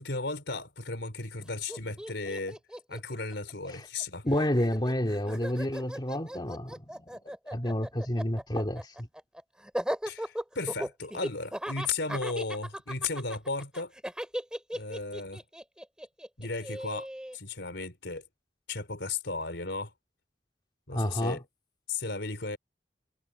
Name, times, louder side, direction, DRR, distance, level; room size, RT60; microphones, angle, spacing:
voice 1, 0.0-2.6 2.9-4.2 10.0-13.9 14.7-15.4 16.4-18.2 18.7-19.9 20.9-21.4 21.9-22.6, left 3 dB, 85° left, 3.8 m, -35 dB
Laughter, 1.4-1.5 1.7-4.0 4.3-17.4, equal, 5° right, 6.4 m, -37 dB
voice 2, 4.2-6.9 7.2-9.1 20.9-21.4, left 1 dB, 25° left, 2.1 m, -30 dB
head